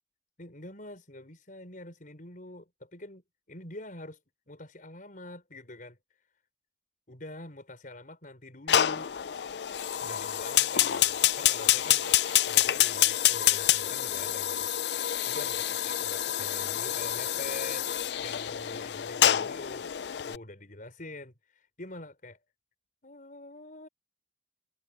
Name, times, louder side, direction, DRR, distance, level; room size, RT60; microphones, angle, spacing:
voice 1, 0.4-3.2 3.5-4.2 4.5-6.0 7.1-9.1 10.0-12.2 12.5-17.9 18.2-20.0 20.3-22.4 23.0-23.9, left 2 dB, 50° left, 5.4 m, -45 dB
Fire, 8.7-20.4, left 12 dB, 65° left, 0.5 m, -27 dB
head